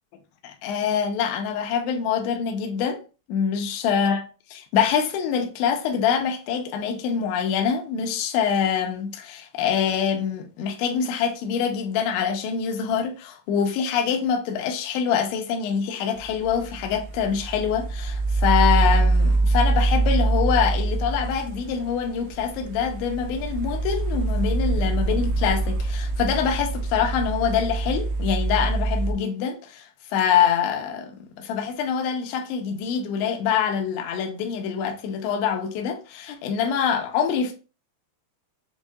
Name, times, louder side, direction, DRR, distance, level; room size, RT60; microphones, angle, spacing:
voice 1, 0.4-3.0 3.3-4.2 4.5-37.5, left 7 dB, 85° left, 2.9 m, -25 dB
sound 1, 16.2-29.1, right 2 dB, 85° right, 2.0 m, -24 dB
7.1 x 2.7 x 2.4 m
omnidirectional pair, 5.2 m